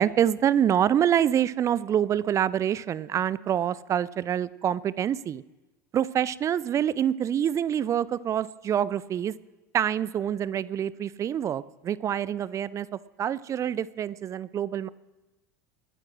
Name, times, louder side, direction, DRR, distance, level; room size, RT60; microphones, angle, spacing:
voice 1, 0.0-5.4 5.9-9.3 9.7-12.9 13.2-14.9, right 9 dB, 35° right, 20 dB, 0.6 m, -26 dB
21.0 x 9.7 x 6.2 m, 1.1 s
figure-of-eight pair, 75°, 9 cm